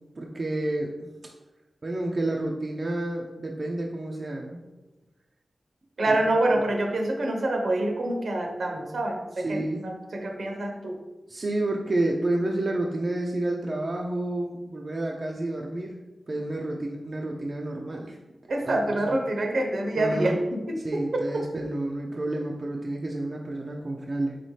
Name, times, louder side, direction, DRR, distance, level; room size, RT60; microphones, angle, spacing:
voice 1, 0.2-1.0 1.8-4.6 9.4-9.9 11.3-15.9 16.3-18.2 18.7-18.8 19.0-19.2 20.0-20.4 20.8-24.4, right 2 dB, 50° right, 0 dB, 0.5 m, -30 dB
voice 2, 6.0-11.0 18.5-21.4, right 1 dB, 75° right, 2 dB, 0.8 m, -26 dB
4.1 x 3.9 x 3.2 m, 1.1 s
cardioid pair, 60°, 0 cm